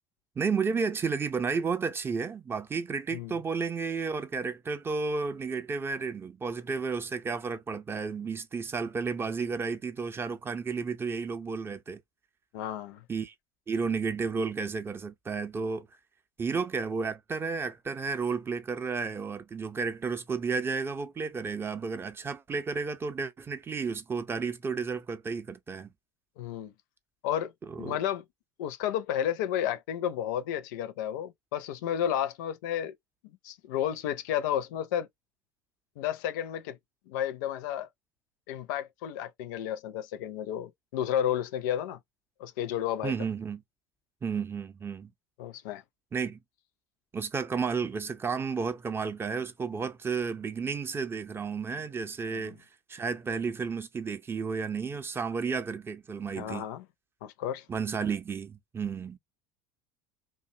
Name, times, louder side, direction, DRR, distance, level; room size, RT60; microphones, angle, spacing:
voice 1, 0.4-12.0 13.1-13.3 13.7-15.9 16.4-25.9 27.7-28.0 43.0-43.6 44.2-45.1 46.1-46.4 47.1-52.6 52.9-56.7 57.7-59.2, right 5 dB, 20° right, 0.5 m, -32 dB
voice 2, 12.5-13.0 26.4-26.7 27.2-27.5 27.8-28.2 28.6-32.9 33.4-35.1 36.0-36.8 37.1-37.9 38.5-42.0 42.4-43.1 45.4-45.8 52.3-52.5 56.4-56.9 57.2-57.6, left 10 dB, 60° left, 0.5 m, -32 dB
2.6 x 2.2 x 2.7 m
figure-of-eight pair, 70°, 11 cm